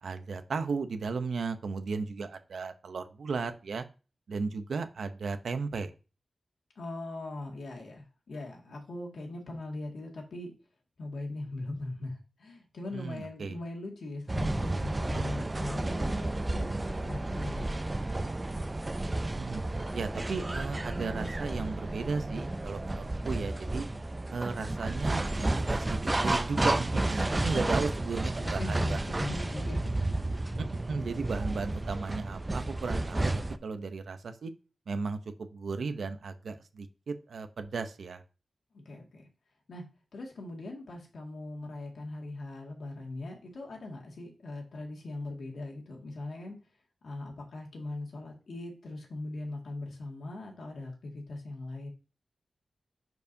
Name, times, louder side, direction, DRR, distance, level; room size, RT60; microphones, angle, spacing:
voice 1, 0.0-3.8 4.3-5.9 12.9-13.6 19.3-19.6 19.9-23.9 24.3-29.0 30.6-33.3 33.6-34.5 34.9-38.2, right 4 dB, 85° right, 8 dB, 0.7 m, -35 dB
voice 2, 6.8-10.5 11.0-17.7 27.4-27.8 28.4-30.0 30.5-30.6 38.7-39.3 39.7-39.8 40.1-46.6 47.0-51.9, left 2 dB, 85° left, 0 dB, 2.0 m, -40 dB
sound 1, 14.3-33.6, right 2 dB, 20° right, 0.4 m, -32 dB
10.5 x 4.7 x 2.7 m, 0.33 s
wide cardioid pair, 130°, 0 cm